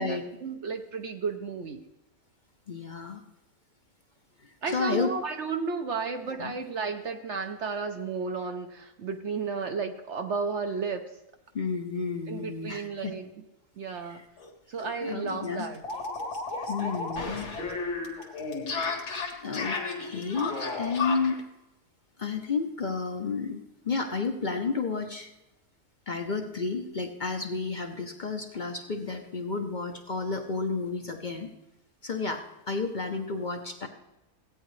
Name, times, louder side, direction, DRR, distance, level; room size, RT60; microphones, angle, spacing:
voice 1, 0.0-1.8 4.6-11.0 12.3-13.3 13.8-14.2 14.7-15.8, right 4 dB, 60° right, 6 dB, 0.8 m, -33 dB
voice 2, 2.7-3.2 4.4-5.1 6.3-6.5 11.5-13.1 14.1-14.2 15.0-15.7 16.7-17.5 19.4-21.4 22.2-25.3 26.1-31.5 32.0-33.9, left 4 dB, 50° left, 5 dB, 0.6 m, -32 dB
sound 1, 14.4-14.5 14.8-14.9 15.2-21.4, left 3 dB, 75° left, 2.2 m, -33 dB
16.0 x 9.1 x 3.2 m, 0.93 s
omnidirectional pair, 1.7 m